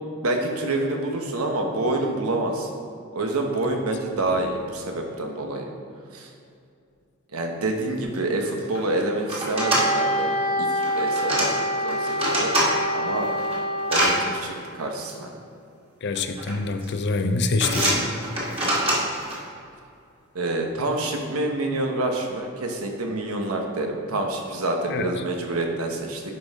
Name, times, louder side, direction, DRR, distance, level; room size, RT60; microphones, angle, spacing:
voice 1, 0.2-2.7 3.1-5.7 6.1-6.3 7.3-10.3 10.6-11.5 11.8-12.5 12.9-13.3 13.9-15.3 20.3-26.2, right 2 dB, 90° right, 2 dB, 1.0 m, -27 dB
sound 1, 8.1-8.2 8.4-8.8 9.3-9.8 10.8-11.5 11.9-12.7 13.2-14.1 15.1-15.2 16.1-16.5 16.8-17.2 17.6-19.3, right 1 dB, 25° right, 1.8 m, -25 dB
Wind instrument woodwind instrument, 9.5-14.3, equal, 65° right, 1.1 m, -26 dB
voice 2, 16.0-18.0 24.9-25.1, left 3 dB, 55° left, 8 dB, 0.5 m, -25 dB
9.7 x 5.4 x 3.6 m, 2.4 s
head